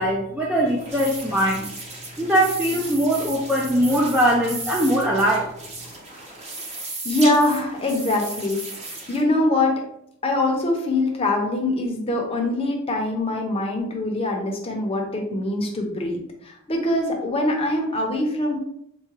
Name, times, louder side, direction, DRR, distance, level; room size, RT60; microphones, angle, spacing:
voice 1, 0.0-1.7 2.2-5.5, right 1 dB, 5° right, -2 dB, 0.3 m, -21 dB
sound 1, 0.7-9.2, right 2 dB, 30° right, 0.7 m, -35 dB
voice 2, 7.0-8.6 9.1-9.7 10.2-18.6, left 2 dB, 25° left, 1 dB, 0.6 m, -23 dB
4.7 x 2.2 x 2.9 m, 0.75 s
head